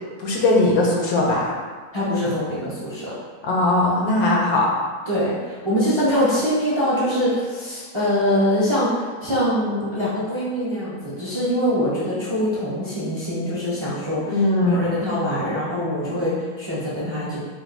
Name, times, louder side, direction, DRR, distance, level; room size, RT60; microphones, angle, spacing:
voice 1, 0.2-1.5 3.4-4.7 6.0-6.2 14.3-14.9, left 2 dB, 75° left, -2 dB, 1.2 m, -19 dB
voice 2, 1.9-3.1 5.1-17.4, equal, 25° right, -9 dB, 0.8 m, -23 dB
3.9 x 2.5 x 3.9 m, 1.5 s
omnidirectional pair, 1.6 m